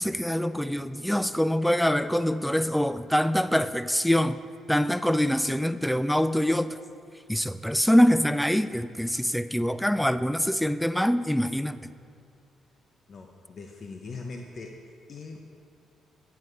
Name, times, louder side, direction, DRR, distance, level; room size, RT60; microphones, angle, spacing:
voice 1, 0.0-4.4 4.7-6.7 7.3-11.8, equal, 5° left, 13 dB, 0.3 m, -24 dB
voice 2, 13.1-14.8 15.1-15.5, left 4 dB, 50° left, 3 dB, 0.6 m, -41 dB
9.2 x 9.0 x 3.3 m, 2.4 s
cardioid pair, 90°, 0 cm